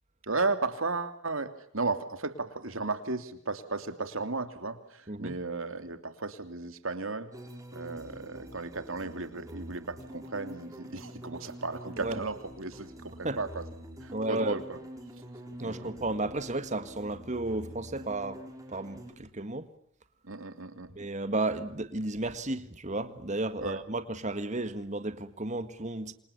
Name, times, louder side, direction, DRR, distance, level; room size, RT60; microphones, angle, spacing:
voice 1, 0.2-7.3 7.7-13.6 14.0-14.8 15.6-15.9 20.2-20.9 23.6-23.8, right 3 dB, 70° right, 2.9 m, -35 dB
sound 1, 7.3-19.1, equal, 15° right, 6.5 m, -46 dB
voice 2, 14.1-14.6 15.6-18.4 18.7-19.7 21.0-26.1, right 2 dB, 35° right, 1.9 m, -33 dB
28.0 x 27.0 x 7.2 m
head